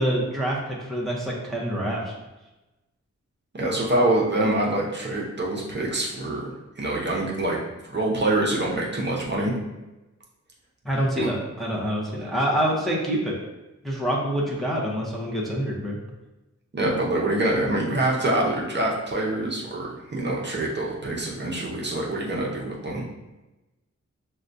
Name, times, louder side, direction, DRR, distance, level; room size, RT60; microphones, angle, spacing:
voice 1, 0.0-2.1 10.8-13.3 13.8-16.0, equal, ahead, -5 dB, 0.7 m, -26 dB
voice 2, 3.5-6.5 6.8-7.6 7.9-9.5 11.2-11.3 16.7-23.0, right 1 dB, 35° right, -3 dB, 0.7 m, -25 dB
6.2 x 2.2 x 2.6 m, 1.0 s
wide cardioid pair, 140°, 29 cm